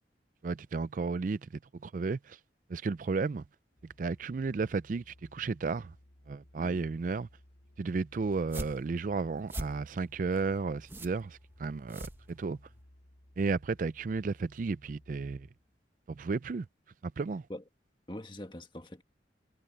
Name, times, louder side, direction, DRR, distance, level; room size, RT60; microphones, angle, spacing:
voice 1, 0.4-2.4 2.7-3.4 3.8-5.9 6.3-7.3 7.8-12.6 13.4-15.5 16.1-16.7 17.0-17.5, right 4 dB, 45° right, 0.4 m, -33 dB
Musical instrument, 3.8-15.8, left 1 dB, 65° left, 2.0 m, -59 dB
voice 2, 6.5-6.9 17.5-17.6 18.1-19.0, left 1 dB, 25° left, 1.6 m, -43 dB
sound 1, 8.3-12.8, right 1 dB, 15° right, 1.3 m, -43 dB
head